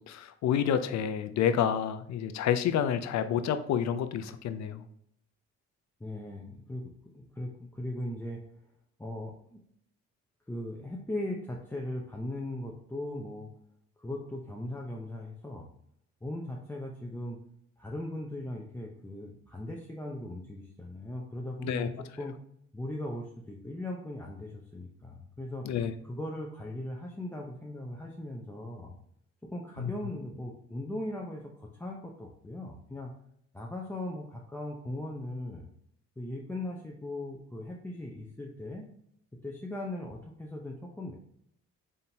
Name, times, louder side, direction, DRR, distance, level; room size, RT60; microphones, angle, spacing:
voice 1, 0.1-4.8 21.6-21.9 25.6-25.9 29.8-29.9, left 9 dB, 65° left, 10 dB, 0.5 m, -29 dB
voice 2, 6.0-8.4 9.0-9.6 10.5-13.5 14.0-15.7 16.2-17.4 17.8-22.3 22.7-25.7 26.0-28.9 29.4-33.1 33.5-35.7 36.2-38.9 39.4-41.1, left 1 dB, 5° left, -2 dB, 0.6 m, -38 dB
4.2 x 3.6 x 2.8 m, 0.70 s
cardioid pair, 90°, 30 cm